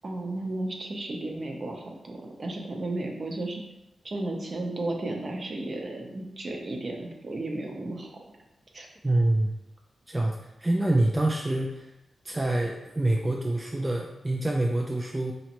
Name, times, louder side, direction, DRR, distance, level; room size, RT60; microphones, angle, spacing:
voice 1, 0.0-3.6 4.0-8.2 8.7-8.9, right 2 dB, 45° right, 1 dB, 0.7 m, -34 dB
voice 2, 9.0-9.5 10.1-11.9 12.2-15.3, right 1 dB, 15° right, 0 dB, 0.4 m, -26 dB
4.0 x 3.1 x 2.9 m, 0.89 s
cardioid pair, 85°, 0 cm